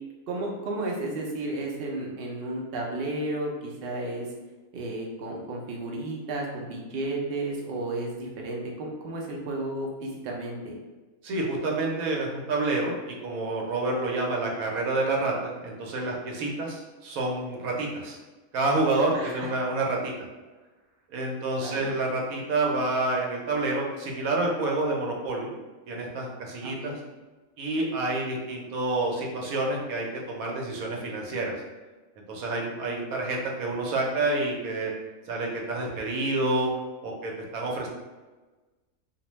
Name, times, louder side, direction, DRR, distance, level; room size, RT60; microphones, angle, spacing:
voice 1, 0.3-4.3 4.7-10.8 19.1-19.3 21.6-21.9 26.6-27.0, right 2 dB, 60° right, -1 dB, 0.6 m, -33 dB
voice 2, 11.2-18.2 18.5-20.3 21.1-25.5 25.9-27.0 27.6-31.5 32.3-34.9 35.3-36.7 37.0-37.9, right 2 dB, 85° right, -1 dB, 1.1 m, -28 dB
2.6 x 2.0 x 3.0 m, 1.2 s
omnidirectional pair, 1.5 m